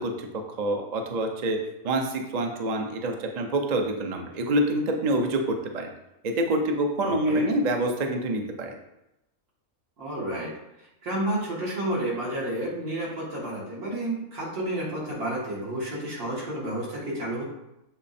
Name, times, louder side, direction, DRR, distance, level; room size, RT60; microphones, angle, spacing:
voice 1, 0.0-1.6 1.8-5.9 6.2-8.7, right 1 dB, 45° right, 3 dB, 0.5 m, -26 dB
voice 2, 7.0-7.5 10.0-10.5 11.0-17.4, right 1 dB, 80° right, -6 dB, 2.5 m, -30 dB
7.2 x 3.2 x 4.2 m, 0.89 s
omnidirectional pair, 1.6 m